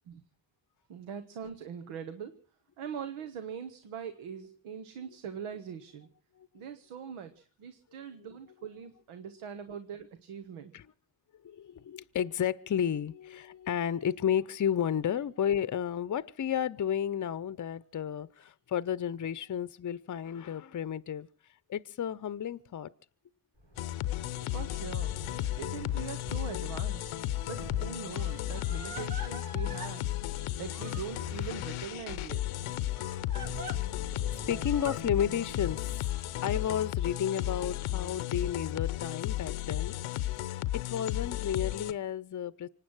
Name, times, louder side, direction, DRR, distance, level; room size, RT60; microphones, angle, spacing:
voice 1, 0.9-2.3 2.8-6.1 6.5-10.7 24.5-25.2 25.6-27.2 27.4-30.1 30.3-32.5, right 7 dB, 85° right, 1.1 m, -42 dB
voice 2, 11.4-21.3 21.7-22.9 33.7-40.0 40.7-42.7, left 9 dB, 40° left, 0.7 m, -32 dB
sound 1, 23.6-36.3, left 1 dB, 60° right, 7.5 m, -48 dB
sound 2, 23.8-41.9, left 15 dB, 85° left, 0.8 m, -34 dB
Crying sobbing, 27.2-27.3 28.1-30.0 30.7-31.5 33.0-33.8 34.6-35.0 36.0-36.6, right 2 dB, 45° right, 5.1 m, -45 dB
25.5 x 9.1 x 6.1 m
supercardioid pair, 40°, 49 cm